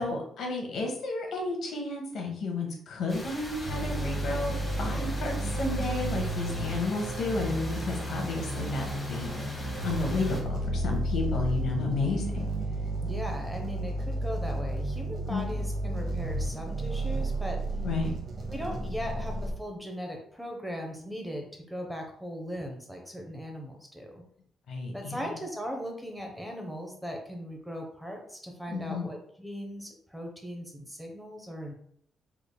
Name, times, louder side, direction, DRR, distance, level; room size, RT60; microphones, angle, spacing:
voice 1, 0.0-4.5 4.8-9.3 9.8-12.5 15.3-15.4 17.8-18.1 24.7-25.2 28.7-29.1, left 3 dB, 70° left, 1 dB, 0.9 m, -32 dB
sound 1, 3.1-10.4, left 1 dB, 20° left, 1.0 m, -41 dB
sound 2, 3.6-19.5, right 1 dB, 45° right, 0.9 m, -32 dB
sound 3, 4.3-10.4, right 5 dB, 70° right, 0.8 m, -45 dB
voice 2, 13.0-17.6 18.5-24.2 24.9-31.7, equal, ahead, 2 dB, 0.7 m, -38 dB
3.6 x 3.3 x 2.2 m, 0.66 s
cardioid pair, 105°, 0 cm